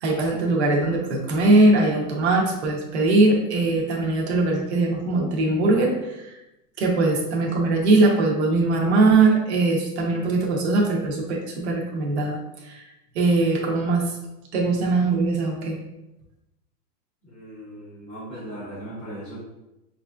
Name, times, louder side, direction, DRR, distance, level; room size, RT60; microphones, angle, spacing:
voice 1, 0.0-6.3 6.8-12.9 13.1-14.1 14.5-15.8, right 2 dB, 40° right, -1 dB, 0.7 m, -21 dB
voice 2, 17.2-19.4, right 1 dB, 10° left, -12 dB, 0.5 m, -38 dB
5.1 x 2.5 x 2.2 m, 0.95 s
supercardioid pair, 175°, 49 cm